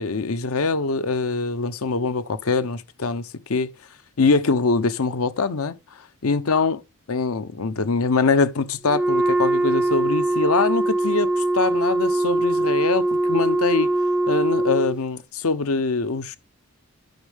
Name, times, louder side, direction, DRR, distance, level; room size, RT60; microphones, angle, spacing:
voice 1, 0.0-3.7 4.2-6.8 7.1-13.9 14.3-16.4, left 4 dB, 75° left, 0.7 m, -23 dB
Wind instrument woodwind instrument, 8.9-15.0, right 2 dB, 5° right, 0.5 m, -22 dB
11.5 x 6.3 x 3.5 m
head